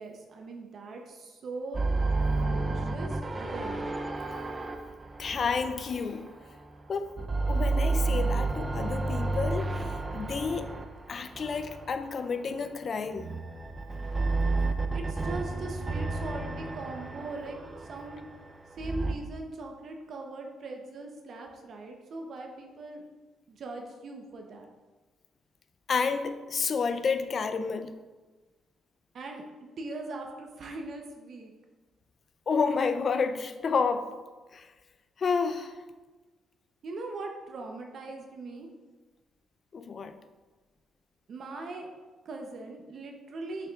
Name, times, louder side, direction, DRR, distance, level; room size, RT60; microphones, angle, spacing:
voice 1, 0.0-1.8 2.1-3.9 14.9-18.3 18.8-23.0 23.5-24.7 29.1-29.4 29.8-31.5 36.8-38.7 41.3-41.9 42.3-43.7, right 2 dB, 55° right, 2 dB, 0.7 m, -40 dB
sound 1, 1.7-6.7 7.1-12.4 13.1-19.1, right 3 dB, 25° right, 0.5 m, -31 dB
voice 2, 5.2-6.3 6.9-7.1 7.5-10.7 11.1-13.3 25.9-27.9 32.5-34.1 34.5-34.7 35.2-35.7 39.7-40.1, left 5 dB, 45° left, 9 dB, 0.5 m, -30 dB
6.7 x 5.9 x 2.4 m, 1.3 s
cardioid pair, 90°, 0 cm